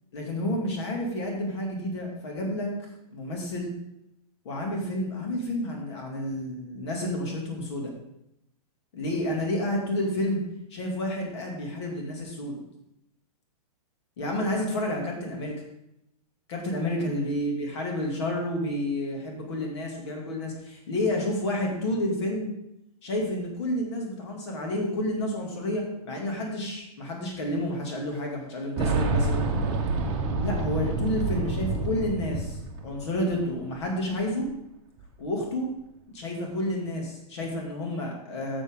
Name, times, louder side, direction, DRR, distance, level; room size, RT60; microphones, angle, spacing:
voice 1, 0.1-2.7 3.1-3.7 4.4-7.9 8.9-10.4 10.7-12.6 14.2-15.5 16.5-22.5 23.0-29.5 30.4-34.5 35.2-35.7 36.1-38.6, left 1 dB, 45° left, 0 dB, 2.7 m, -30 dB
Boom, 28.8-33.5 33.8-33.9 35.0-35.1, right 3 dB, 20° right, 1.2 m, -28 dB
11.5 x 7.1 x 3.8 m, 0.83 s
hypercardioid pair, 175°, 20 cm